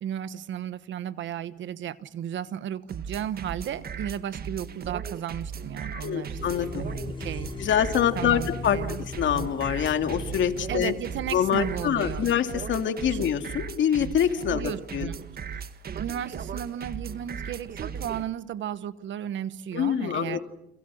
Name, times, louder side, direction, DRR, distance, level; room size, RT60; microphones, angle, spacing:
voice 1, 0.0-7.7 8.1-9.0 9.3-9.5 10.7-12.3 13.1-13.2 14.5-15.1 15.9-20.4, right 10 dB, 75° right, 1.3 m, -34 dB
sound 1, 2.9-18.2, right 6 dB, 50° right, 1.7 m, -37 dB
voice 2, 5.9-6.9 7.6-8.8 9.2-10.9 11.3-15.1 19.7-20.5, left 9 dB, 70° left, 2.6 m, -25 dB
sound 2, 6.4-12.4, left 3 dB, 25° left, 2.3 m, -39 dB
29.5 x 28.0 x 6.4 m
cardioid pair, 90°, 20 cm